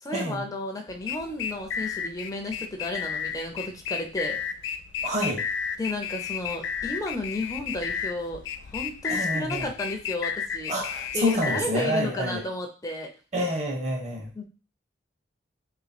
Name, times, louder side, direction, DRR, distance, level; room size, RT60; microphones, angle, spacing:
voice 1, 0.0-4.4 5.8-10.7 11.1-13.1 14.3-14.4, left 1 dB, 20° left, 2 dB, 0.6 m, -33 dB
sound 1, 0.9-11.6, left 7 dB, 80° left, 0.4 m, -32 dB
voice 2, 5.0-5.4 9.1-9.6 10.7-12.4 13.3-14.3, equal, 40° right, 0 dB, 1.2 m, -27 dB
3.2 x 3.0 x 4.2 m, 0.35 s
head